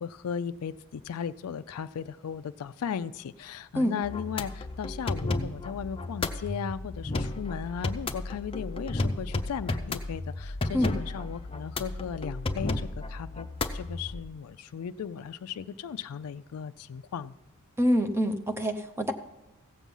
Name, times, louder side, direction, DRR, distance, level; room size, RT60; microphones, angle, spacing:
voice 1, 0.0-17.3, left 7 dB, 85° left, 11 dB, 0.4 m, -36 dB
sound 1, 4.0-14.2, left 2 dB, 25° left, 0.6 m, -33 dB
voice 2, 17.8-19.1, equal, 10° right, 6 dB, 0.8 m, -26 dB
16.0 x 7.3 x 5.4 m, 0.99 s
head